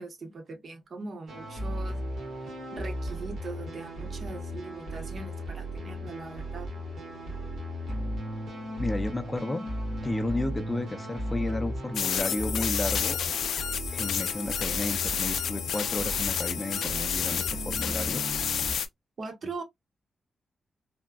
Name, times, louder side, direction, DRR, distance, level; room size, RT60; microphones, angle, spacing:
voice 1, 0.0-2.0 2.4-6.7 19.2-19.6, right 3 dB, 40° right, 0.7 m, -41 dB
sound 1, 1.3-18.7, equal, 85° right, 1.4 m, -36 dB
voice 2, 8.8-9.7 10.0-13.2 13.9-18.2, left 2 dB, 15° left, 0.5 m, -32 dB
sound 2, 11.9-18.9, left 8 dB, 85° left, 0.4 m, -30 dB
3.4 x 2.0 x 2.3 m
wide cardioid pair, 170°, 0 cm